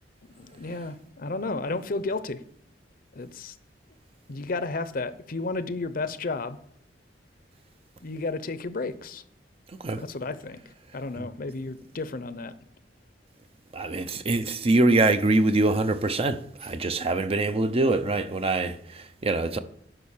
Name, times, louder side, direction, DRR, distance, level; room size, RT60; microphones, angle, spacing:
voice 1, 0.4-2.4 3.1-3.6 4.3-6.6 8.0-9.2 10.0-10.6 10.9-12.5, left 3 dB, 50° left, 0.7 m, -32 dB
voice 2, 13.7-19.6, right 2 dB, 35° right, 0.6 m, -24 dB
11.0 x 5.6 x 7.2 m
head